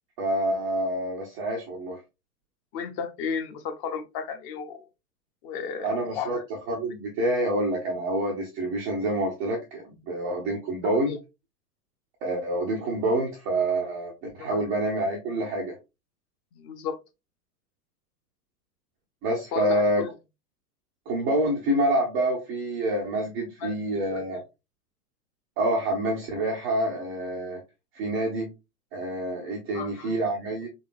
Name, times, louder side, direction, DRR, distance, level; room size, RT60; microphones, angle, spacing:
voice 1, 0.2-2.0 5.8-6.4 6.7-11.2 12.2-15.8 19.2-20.0 21.1-24.4 25.6-27.6 27.9-28.5 28.9-30.7, right 1 dB, 15° right, 0.3 m, -27 dB
voice 2, 2.7-4.8 5.4-6.4 10.8-11.2 14.4-14.6 16.5-17.0 19.5-20.1 23.6-24.2 29.7-30.2, left 6 dB, 35° left, 0.6 m, -34 dB
3.7 x 3.3 x 2.5 m
figure-of-eight pair, 100°, 48 cm